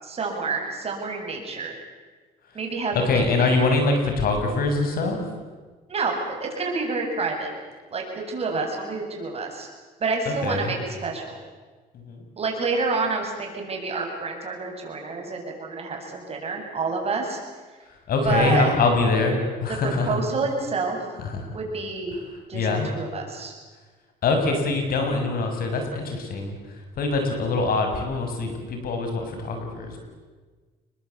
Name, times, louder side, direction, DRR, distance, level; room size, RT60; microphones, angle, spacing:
voice 1, 0.0-1.8 2.5-3.5 5.9-7.5 7.9-9.7 10.0-11.4 12.4-17.4 18.2-18.7 20.0-21.0 21.5-22.2 22.5-22.7 22.9-23.5, right 4 dB, 35° right, 1 dB, 7.9 m, -28 dB
voice 2, 2.9-5.2 10.4-10.8 12.1-12.2 18.1-20.2 21.2-21.5 22.5-22.9 24.2-26.5 27.0-30.0, left 3 dB, 60° left, 4 dB, 7.0 m, -23 dB
29.5 x 22.0 x 8.5 m, 1.4 s
cardioid pair, 110°, 17 cm